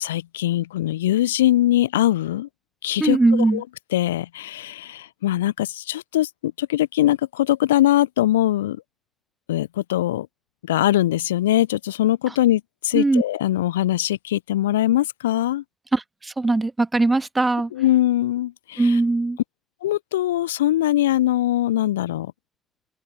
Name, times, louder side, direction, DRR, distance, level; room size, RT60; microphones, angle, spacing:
voice 1, 0.0-2.5 2.8-3.6 3.9-8.8 9.5-10.3 10.7-15.6 17.7-19.0 19.8-22.3, left 14 dB, 80° left, 0.6 m, -22 dB
voice 2, 3.0-3.6 12.9-13.2 15.9-17.7 18.8-19.4, right 2 dB, 20° right, 2.0 m, -20 dB
open air
figure-of-eight pair, 40°, 0 cm